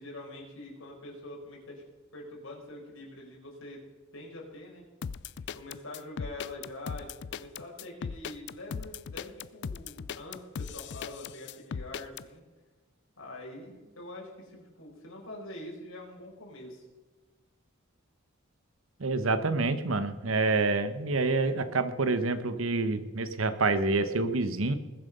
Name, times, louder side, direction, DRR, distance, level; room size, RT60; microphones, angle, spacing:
voice 1, 0.0-1.8 2.1-3.8 4.1-4.9 5.5-12.4 13.2-16.8, left 1 dB, 90° left, -2 dB, 4.9 m, -44 dB
sound 1, 5.0-12.2, left 6 dB, 60° left, 0.4 m, -38 dB
voice 2, 19.0-24.8, right 3 dB, 85° right, 11 dB, 1.1 m, -27 dB
20.5 x 7.5 x 5.5 m, 1.2 s
head